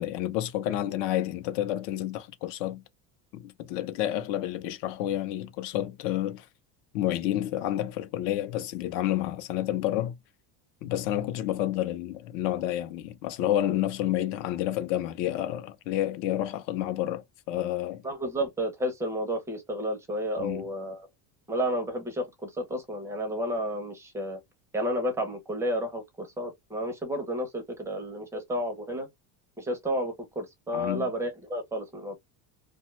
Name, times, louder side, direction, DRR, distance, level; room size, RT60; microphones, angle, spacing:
voice 1, 0.0-2.8 3.3-6.5 6.9-10.2 10.8-18.0 20.4-20.7 30.7-31.1, left 13 dB, 65° left, 0.6 m, -30 dB
voice 2, 18.0-21.1 21.5-24.4 24.7-29.1 29.6-32.1, equal, 5° right, 0.5 m, -31 dB
2.6 x 2.2 x 2.9 m
cardioid pair, 165°, 45 cm